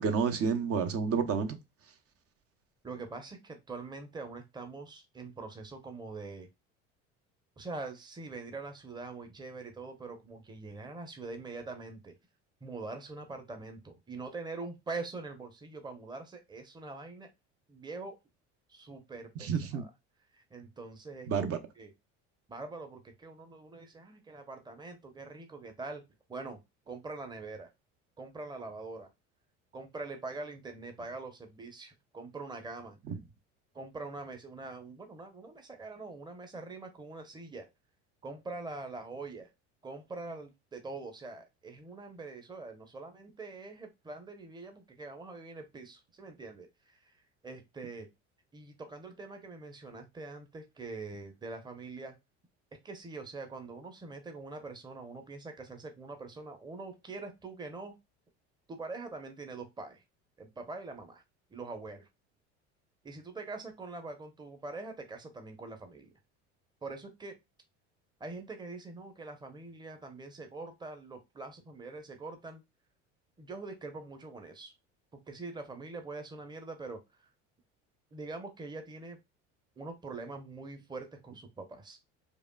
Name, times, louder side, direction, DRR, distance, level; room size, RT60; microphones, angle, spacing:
voice 1, 0.0-1.6 19.4-19.8 21.3-21.6 33.1-33.2, right 6 dB, 45° right, 0.8 m, -29 dB
voice 2, 2.8-6.5 7.6-12.1 12.6-17.3 17.7-18.2 18.7-19.9 20.3-21.5 21.8-21.9 22.5-26.0 26.3-27.7 28.2-29.1 29.7-33.0 33.7-37.7 38.2-39.5 39.8-47.1 47.4-48.1 48.5-52.2 52.8-57.9 58.7-60.0 60.4-61.2 61.5-62.1 63.0-66.1 66.8-67.4 68.2-72.6 73.4-74.7 75.1-77.3 78.1-79.2 79.8-82.0, right 3 dB, 15° right, 0.8 m, -44 dB
4.9 x 2.4 x 2.2 m
hypercardioid pair, 80°, 34 cm